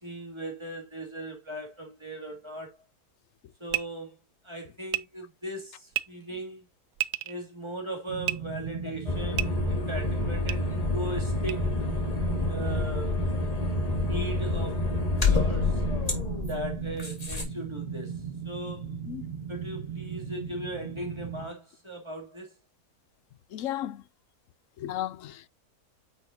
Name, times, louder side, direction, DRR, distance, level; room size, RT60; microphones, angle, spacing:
voice 1, 0.0-2.8 3.6-4.2 4.4-6.7 7.2-11.7 12.4-13.2 14.0-15.8 16.5-18.9 19.5-22.5, right 1 dB, 15° right, 2.7 m, -38 dB
sound 1, 3.7-3.8 4.9-5.0 5.9-6.0 6.9-7.4 8.2-8.4 9.3-9.5 10.5-10.6 11.5-11.6, right 14 dB, 85° right, 1.2 m, -29 dB
sound 2, 8.1-21.5, right 7 dB, 40° right, 1.8 m, -38 dB
sound 3, 9.1-17.4, left 3 dB, 25° left, 2.1 m, -28 dB
voice 2, 23.5-24.0 24.8-25.5, left 12 dB, 65° left, 0.8 m, -34 dB
9.6 x 6.0 x 2.8 m
omnidirectional pair, 1.7 m